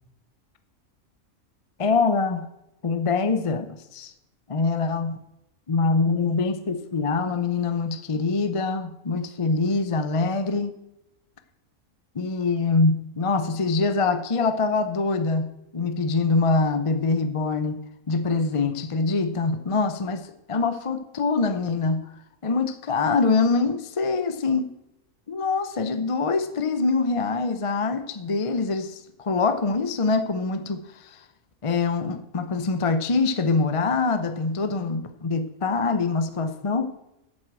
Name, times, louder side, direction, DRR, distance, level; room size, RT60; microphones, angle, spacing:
voice 1, 1.8-2.5 2.8-4.1 4.5-5.2 5.7-10.7 12.1-17.8 18.1-22.1 22.4-24.6 25.3-31.2 31.6-36.9, left 4 dB, 30° left, 9 dB, 0.6 m, -24 dB
8.4 x 7.9 x 7.5 m, 0.87 s
omnidirectional pair, 1.5 m